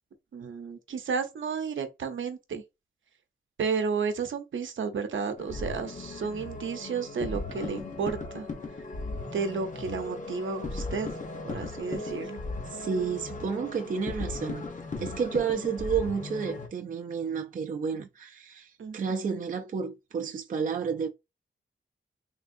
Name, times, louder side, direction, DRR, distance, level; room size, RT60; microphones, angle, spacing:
voice 1, 0.3-2.6 3.6-8.5 9.3-11.1 11.4-12.4 18.8-19.4, right 5 dB, 80° right, 0.7 m, -32 dB
sound 1, 5.4-16.7, left 2 dB, 40° left, 0.7 m, -37 dB
voice 2, 12.7-14.7 15.0-21.1, right 6 dB, 45° right, 0.4 m, -31 dB
3.5 x 2.5 x 2.5 m
wide cardioid pair, 165°, 20 cm